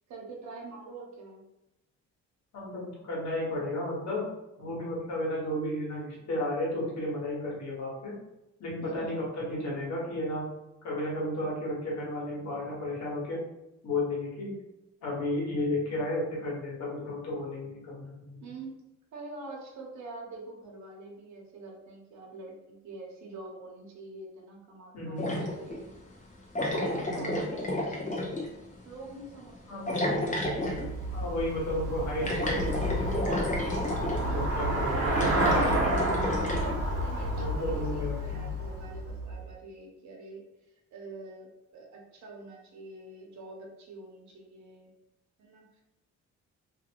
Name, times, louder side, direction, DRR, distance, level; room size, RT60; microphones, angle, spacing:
voice 1, 0.0-1.4 8.8-9.2 18.4-18.8 19.1-25.9 26.6-28.5 28.8-29.9 34.2-34.5 35.6-35.9 36.8-44.9 45.4-45.8, right 3 dB, 70° right, -1 dB, 0.8 m, -45 dB
voice 2, 2.5-4.2 4.6-8.1 8.6-10.5 10.8-13.4 13.8-14.5 15.0-18.4 24.9-25.4 26.7-27.4 29.7-30.2 31.1-33.4 34.0-35.4 37.3-38.4, left 1 dB, 65° left, -4 dB, 1.3 m, -33 dB
sound 1, 25.2-25.8 26.6-28.5 29.9-30.9 32.2-34.3 35.1-36.7, left 1 dB, 25° left, 0.7 m, -31 dB
Traffic noise roadway noise / Bicycle, 30.3-39.5, right 1 dB, 50° right, 0.9 m, -30 dB
2.6 x 2.5 x 2.8 m, 0.93 s
cardioid pair, 90°, 30 cm